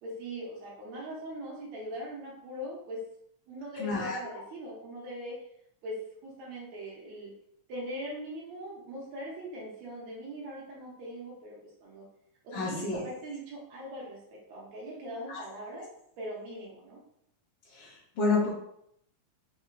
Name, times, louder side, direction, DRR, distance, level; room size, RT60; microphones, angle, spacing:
voice 1, 0.0-3.0 3.5-5.5 5.8-6.0 6.2-7.3 7.7-12.1 12.4-15.9 16.2-17.0, equal, 75° right, -4 dB, 2.4 m, -41 dB
voice 2, 3.8-4.2 12.5-13.0 15.3-15.4 17.7-18.5, left 4 dB, 65° left, -7 dB, 1.8 m, -29 dB
5.7 x 3.5 x 2.4 m, 0.73 s
omnidirectional pair, 3.3 m